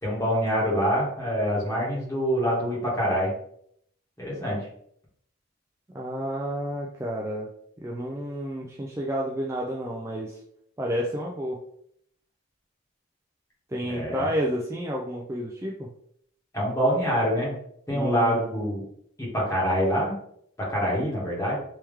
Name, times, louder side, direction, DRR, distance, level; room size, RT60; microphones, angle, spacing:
voice 1, 0.0-3.3 4.2-4.6 13.9-14.3 16.5-17.5 17.9-18.8 19.2-20.1 20.6-21.6, equal, 15° left, -6 dB, 1.4 m, -25 dB
voice 2, 5.9-7.5 7.8-10.4 10.8-11.6 13.7-15.9 17.9-18.4, equal, 15° right, -2 dB, 0.3 m, -30 dB
3.4 x 3.0 x 3.2 m, 0.70 s
head